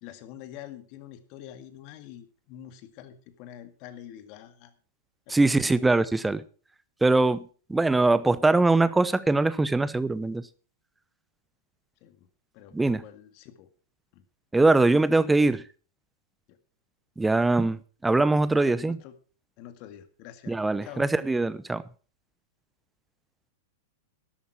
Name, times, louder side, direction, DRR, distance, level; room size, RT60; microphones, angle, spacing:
voice 1, 0.0-4.7 5.3-5.9 12.0-12.3 12.5-13.7 14.1-14.2 16.5-16.6 18.6-19.1 19.6-20.6 20.8-21.1, left 11 dB, 45° left, 2.0 m, -46 dB
voice 2, 5.3-6.4 7.0-10.4 12.7-13.0 14.5-15.6 17.2-19.0 20.5-21.8, right 2 dB, 10° right, 0.9 m, -22 dB
13.0 x 11.5 x 4.7 m
hypercardioid pair, 100°, 0 cm